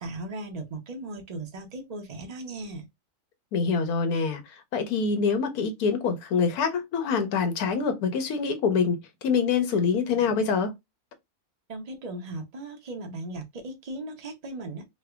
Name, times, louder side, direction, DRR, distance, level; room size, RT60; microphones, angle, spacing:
voice 1, 0.0-2.8 11.7-14.9, right 2 dB, 85° right, 0.3 m, -37 dB
voice 2, 3.5-4.4 4.7-9.0 9.2-10.7, left 5 dB, 75° left, 1.2 m, -25 dB
3.2 x 2.2 x 3.3 m
omnidirectional pair, 1.6 m